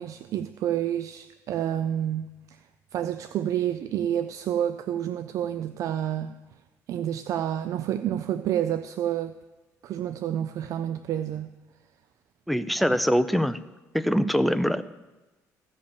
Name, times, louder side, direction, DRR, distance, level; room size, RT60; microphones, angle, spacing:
voice 1, 0.0-2.3 2.9-6.3 6.9-9.3 9.8-11.5, right 10 dB, 60° right, 0.4 m, -29 dB
voice 2, 12.5-13.6 13.9-14.8, equal, ahead, 0.4 m, -23 dB
15.5 x 5.3 x 7.0 m
cardioid pair, 130°, 6 cm